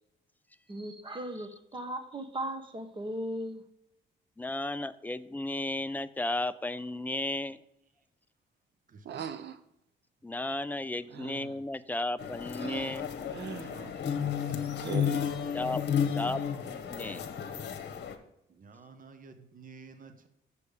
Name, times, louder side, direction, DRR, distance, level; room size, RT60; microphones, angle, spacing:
voice 1, 0.7-3.6, right 1 dB, 25° right, 8 dB, 1.2 m, -37 dB
voice 2, 4.4-7.6 10.2-13.1 15.5-15.8 16.1-16.4 16.7-17.2, left 2 dB, 10° left, 13 dB, 0.4 m, -34 dB
voice 3, 8.9-9.2 13.7-14.8 18.5-20.3, right 4 dB, 45° right, 8 dB, 1.0 m, -50 dB
sound 1, 9.0-9.6 11.1-11.6 12.6-13.0 13.3-13.8 14.8-15.3, right 8 dB, 60° right, 0.6 m, -40 dB
sound 2, 12.2-18.2, left 8 dB, 60° left, 1.1 m, -33 dB
6.9 x 6.5 x 5.0 m, 0.80 s
cardioid pair, 90°, 20 cm